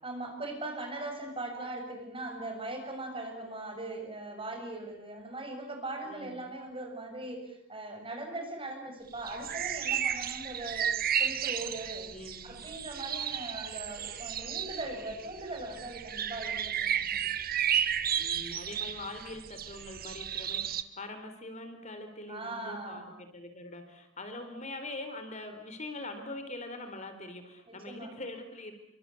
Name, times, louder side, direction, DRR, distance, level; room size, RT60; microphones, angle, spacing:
voice 1, 0.0-10.9 11.2-12.1 12.4-17.4 22.3-23.2 27.7-28.1, right 2 dB, 30° right, 4 dB, 6.9 m, -40 dB
voice 2, 6.1-6.5 12.1-12.6 18.2-28.8, left 2 dB, 35° left, 7 dB, 3.8 m, -43 dB
sound 1, 9.2-20.8, right 9 dB, 50° right, 1.4 m, -33 dB
29.0 x 24.5 x 8.4 m, 0.77 s
head